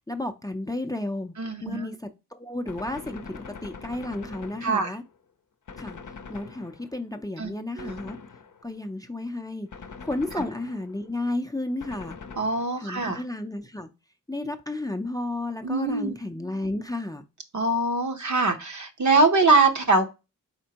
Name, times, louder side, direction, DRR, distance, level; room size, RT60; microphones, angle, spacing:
voice 1, 0.1-1.3 1.6-2.0 2.3-5.0 5.8-6.0 6.3-8.2 8.6-9.7 10.0-12.2 12.8-13.9 14.3-17.3, left 2 dB, 10° left, 0.5 m, -32 dB
voice 2, 1.4-1.9 4.6-4.9 7.4-7.5 7.8-7.9 12.4-13.2 15.6-16.1 17.5-20.1, right 3 dB, 60° right, 0.8 m, -23 dB
Gunshot gunfire, 2.7-5.2 5.7-7.1 7.8-8.8 9.7-11.1 11.8-13.0, left 5 dB, 65° left, 0.6 m, -43 dB
4.4 x 4.2 x 2.8 m
wide cardioid pair, 60°, 33 cm